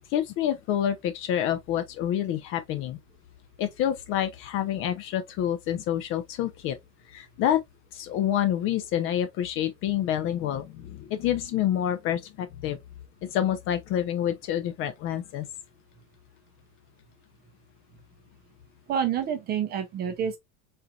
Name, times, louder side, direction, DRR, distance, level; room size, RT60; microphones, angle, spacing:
voice 1, 0.1-3.0 3.6-6.8 7.1-7.6 7.9-12.8 13.2-15.5, left 10 dB, 35° left, 0.4 m, -28 dB
voice 2, 18.9-20.4, right 8 dB, 25° right, 0.4 m, -28 dB
4.3 x 4.0 x 2.2 m
cardioid pair, 175°, 40 cm